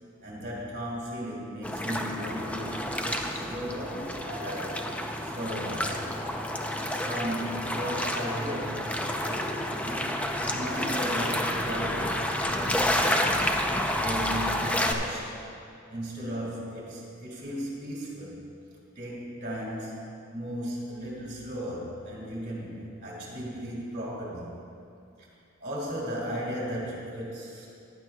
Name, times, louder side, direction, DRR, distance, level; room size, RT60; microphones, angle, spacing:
voice 1, 0.2-4.8 5.2-6.1 6.9-8.9 9.2-13.5 14.0-15.4 15.9-18.4 19.0-20.0 20.3-24.5 25.6-27.7, equal, 45° right, -5 dB, 2.2 m, -36 dB
sound 1, 1.6-14.9, left 1 dB, 5° left, 0.5 m, -29 dB
15.5 x 11.0 x 2.3 m, 2.6 s
head